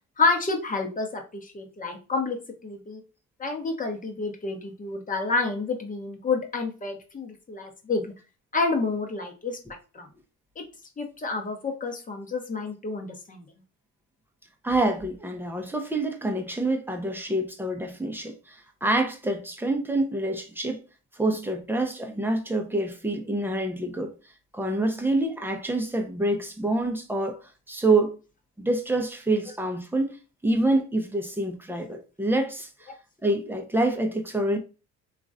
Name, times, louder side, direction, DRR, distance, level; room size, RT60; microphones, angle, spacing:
voice 1, 0.2-2.4 2.6-3.0 3.4-8.1 8.5-9.6 9.9-10.1 10.6-10.7 11.0-13.4, left 3 dB, 25° left, 0.9 m, -29 dB
voice 2, 14.6-20.8 21.2-24.1 24.5-27.4 27.7-28.2 28.6-30.2 30.4-32.7 33.2-34.6, right 2 dB, 5° right, 0.7 m, -26 dB
3.0 x 2.5 x 2.5 m
cardioid pair, 90°, 31 cm